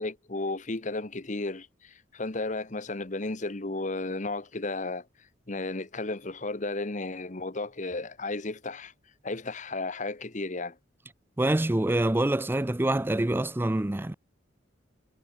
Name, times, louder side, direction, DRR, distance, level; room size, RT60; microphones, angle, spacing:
voice 1, 0.0-5.1 5.5-8.9 9.2-10.8, left 2 dB, 40° left, 1.2 m, -33 dB
voice 2, 11.4-14.1, right 1 dB, 10° right, 0.5 m, -26 dB
head